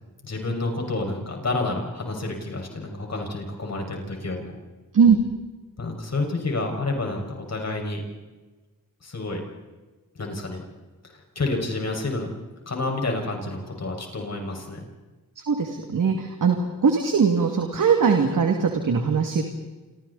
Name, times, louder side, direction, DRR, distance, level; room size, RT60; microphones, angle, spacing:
voice 1, 0.2-4.5 5.8-8.0 9.0-9.4 10.1-10.6 11.1-12.3 12.7-14.9, left 2 dB, 50° left, 2 dB, 6.3 m, -29 dB
voice 2, 15.4-16.6 16.8-19.4, right 6 dB, 65° right, 3 dB, 2.6 m, -20 dB
28.0 x 28.0 x 4.3 m, 1.3 s
cardioid pair, 75°, 34 cm